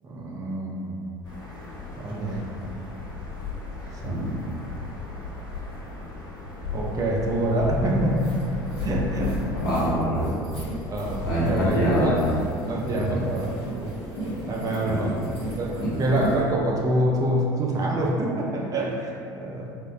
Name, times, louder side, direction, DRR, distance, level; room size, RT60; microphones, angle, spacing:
voice 1, 0.0-1.1 2.0-2.5 4.0-4.5 6.7-9.4 10.9-12.2 12.7-14.0 14.5-15.3 15.6-19.7, right 1 dB, 30° right, -2 dB, 0.4 m, -26 dB
sound 1, 1.2-9.9, left 3 dB, 35° left, 0.8 m, -35 dB
voice 2, 4.0-4.4 9.5-10.4 11.3-12.2 12.9-13.1 14.9-15.1 15.8-15.9, equal, 75° left, -9 dB, 0.8 m, -25 dB
sound 2, 7.6-7.7 8.0-16.4, right 1 dB, 85° right, 1.4 m, -34 dB
3.6 x 2.0 x 2.3 m, 2.5 s
figure-of-eight pair, 65°, 12 cm